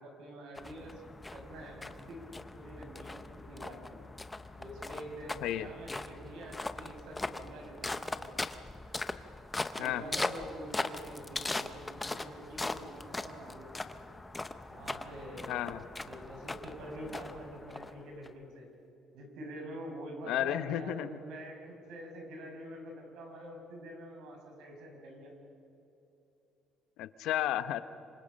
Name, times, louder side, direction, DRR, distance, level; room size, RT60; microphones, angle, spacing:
voice 1, 0.0-1.0 1.3-2.3 2.5-4.0 4.6-8.3 9.8-13.7 14.7-15.6 16.1-18.7 19.1-25.3, right 1 dB, 75° right, 1 dB, 6.2 m, -46 dB
sound 1, 0.6-18.3, left 2 dB, 10° left, 0.7 m, -40 dB
voice 2, 15.5-15.8 20.3-21.1 27.0-27.8, left 12 dB, 75° left, 12 dB, 0.9 m, -32 dB
27.0 x 25.5 x 5.3 m, 3.0 s
cardioid pair, 165°, 0 cm